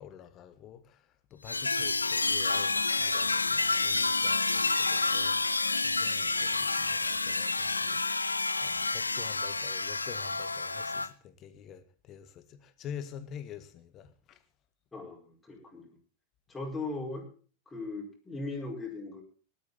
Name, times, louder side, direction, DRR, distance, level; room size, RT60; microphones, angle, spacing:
voice 1, 0.0-8.3 8.6-14.4, left 8 dB, 35° left, 1.8 m, -47 dB
sound 1, 1.5-11.1, left 3 dB, 80° left, 0.6 m, -29 dB
voice 2, 14.9-15.9 16.5-17.3 17.7-19.2, left 3 dB, 10° left, 5.0 m, -38 dB
19.0 x 12.0 x 4.0 m
figure-of-eight pair, 90°, 0 cm